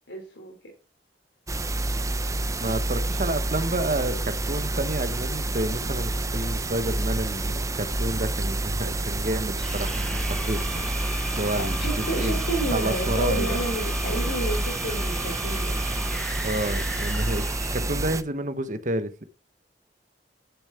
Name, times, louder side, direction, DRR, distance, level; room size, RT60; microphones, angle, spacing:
voice 1, 0.1-0.5 11.5-15.7, right 1 dB, 85° left, 3.3 m, -31 dB
sound 1, 1.5-18.2, right 2 dB, 20° right, 0.7 m, -28 dB
voice 2, 2.6-12.4 12.7-13.6 16.4-19.2, right 1 dB, 45° right, 1.1 m, -30 dB
sound 2, 9.6-18.1, left 1 dB, 5° left, 1.0 m, -36 dB
sound 3, 16.4-17.5, equal, 65° left, 4.0 m, -44 dB
10.5 x 7.1 x 4.4 m
head